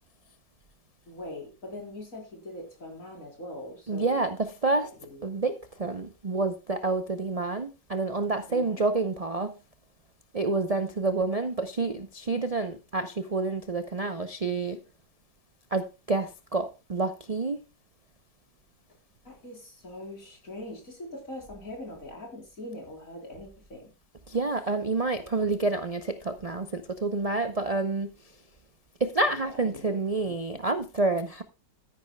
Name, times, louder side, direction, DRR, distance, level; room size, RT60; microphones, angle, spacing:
voice 1, 1.1-4.2 4.8-5.2 8.5-8.8 19.2-23.9 29.3-29.9 30.2-30.6, left 1 dB, 45° left, 4.4 m, -42 dB
voice 2, 3.9-4.9 5.2-9.6 10.3-14.8 15.7-17.6 24.3-28.4 29.0-31.4, right 3 dB, 65° right, 0.3 m, -28 dB
13.0 x 10.5 x 2.3 m
omnidirectional pair, 1.9 m